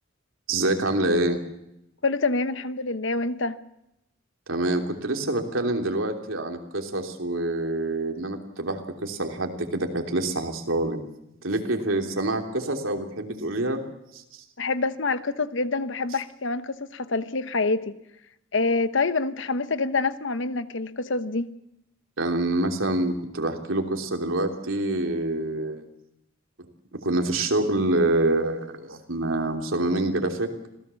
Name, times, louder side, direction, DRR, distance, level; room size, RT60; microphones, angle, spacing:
voice 1, 0.5-1.4 4.5-11.0 11.4-13.8 14.1-14.2 22.2-25.8 26.6-30.5, right 2 dB, 85° right, 4 dB, 3.2 m, -26 dB
voice 2, 2.0-3.6 14.6-17.9 18.5-21.5, left 3 dB, 65° left, 13 dB, 1.0 m, -26 dB
26.0 x 17.0 x 7.1 m, 0.85 s
head